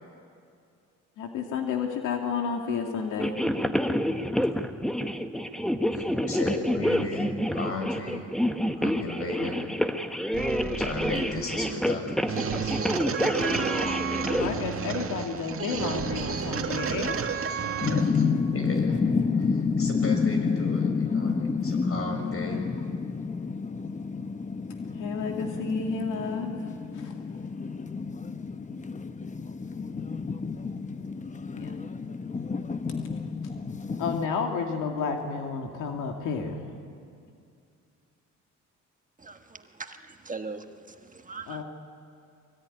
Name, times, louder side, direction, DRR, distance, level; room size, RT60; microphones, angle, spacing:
voice 1, 1.2-3.4 14.4-17.2 25.0-26.6 26.9-27.1 31.5-31.7 34.0-36.7 41.5-41.6, left 5 dB, 90° left, 2.3 m, -31 dB
sound 1, 3.2-14.5, equal, ahead, 1.3 m, -28 dB
voice 2, 5.9-8.3 8.8-9.7 10.8-13.1 18.1-22.6, left 2 dB, 50° left, 6.5 m, -36 dB
sound 2, 10.3-18.3, right 6 dB, 45° right, 2.0 m, -31 dB
sound 3, 17.8-34.3, left 5 dB, 25° left, 1.0 m, -29 dB
voice 3, 39.2-41.6, right 4 dB, 25° right, 1.5 m, -41 dB
23.5 x 23.0 x 10.0 m
cardioid pair, 90°, 30 cm